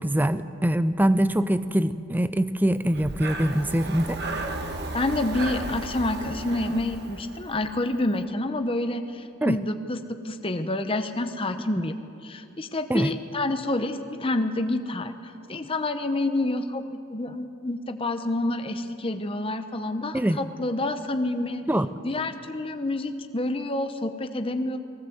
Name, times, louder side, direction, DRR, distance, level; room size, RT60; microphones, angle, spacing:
voice 1, 0.0-4.2 9.4-9.6 12.9-13.1 20.1-20.4 21.7-21.9, right 1 dB, 10° right, 13 dB, 0.4 m, -23 dB
Breathing, 2.8-7.8, right 2 dB, 45° right, 1.5 m, -34 dB
voice 2, 4.9-11.9 12.2-21.6 22.0-24.8, left 2 dB, 25° left, 8 dB, 0.8 m, -28 dB
19.5 x 17.0 x 7.9 m, 2.6 s
head